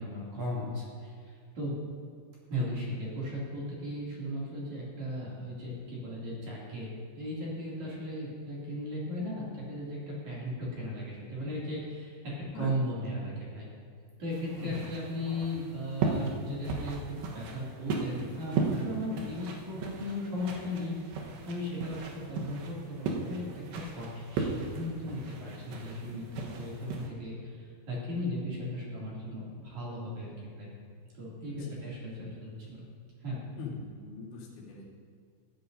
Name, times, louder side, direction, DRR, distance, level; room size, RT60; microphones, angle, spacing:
voice 1, 0.0-1.7 2.5-6.9 7.1-13.7 14.2-30.3 30.6-30.7 31.2-32.8 33.2-33.4, left 1 dB, 45° right, -7 dB, 3.4 m, -37 dB
sound 1, 14.3-27.1, right 4 dB, 70° right, 3.1 m, -36 dB
voice 2, 31.5-31.8 33.6-34.9, left 4 dB, 55° left, -9 dB, 3.9 m, -41 dB
16.5 x 12.0 x 2.7 m, 2.1 s
omnidirectional pair, 5.6 m